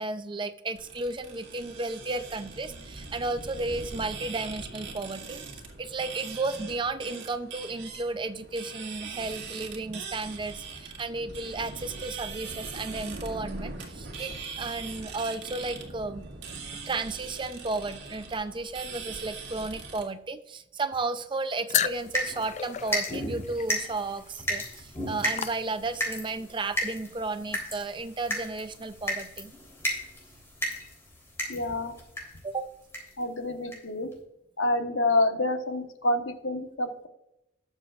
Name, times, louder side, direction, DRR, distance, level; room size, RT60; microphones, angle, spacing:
voice 1, 0.0-5.4 5.8-16.3 16.9-29.5 32.4-32.7, right 3 dB, 25° right, 11 dB, 0.5 m, -33 dB
sound 1, 0.7-20.0, right 4 dB, 65° right, 2.1 m, -41 dB
sound 2, 21.7-26.2, left 9 dB, 35° left, 0.4 m, -34 dB
sound 3, 21.8-32.5 32.9-33.2 33.7-33.8 34.1-34.2, equal, 15° left, 3.5 m, -34 dB
voice 2, 31.5-31.9 33.2-34.1 34.6-37.1, left 2 dB, 80° left, 6 dB, 1.2 m, -27 dB
19.5 x 7.1 x 2.4 m, 0.81 s
head